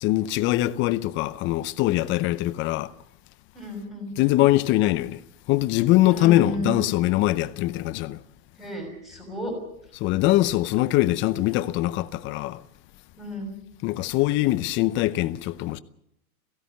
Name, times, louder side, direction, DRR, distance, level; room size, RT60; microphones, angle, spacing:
voice 1, 0.0-2.9 4.2-5.2 5.5-8.2 10.0-12.6 13.8-15.8, left 16 dB, 25° left, 0.7 m, -22 dB
voice 2, 3.5-4.1 6.1-6.8 8.6-9.5 13.2-13.5, equal, ahead, 6.3 m, -32 dB
17.0 x 16.0 x 9.3 m
hypercardioid pair, 130°, 45 cm